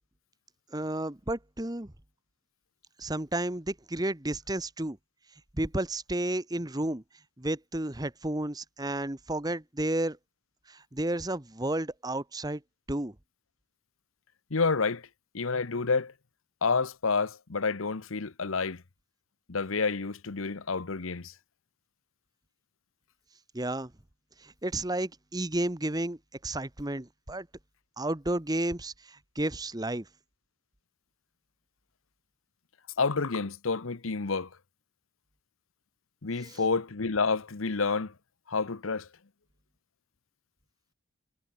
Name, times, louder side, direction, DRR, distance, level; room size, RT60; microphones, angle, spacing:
voice 1, 0.7-1.9 3.0-5.0 5.6-7.0 7.4-10.2 10.7-12.6 12.9-13.1 23.5-23.9 24.4-27.5 28.0-30.0 36.4-36.6, right 1 dB, 20° right, 1.2 m, -32 dB
voice 2, 14.5-15.1 15.3-16.1 16.6-18.8 19.5-21.3 33.0-34.5 36.2-38.1 38.5-39.1, left 4 dB, 80° left, 1.0 m, -29 dB
head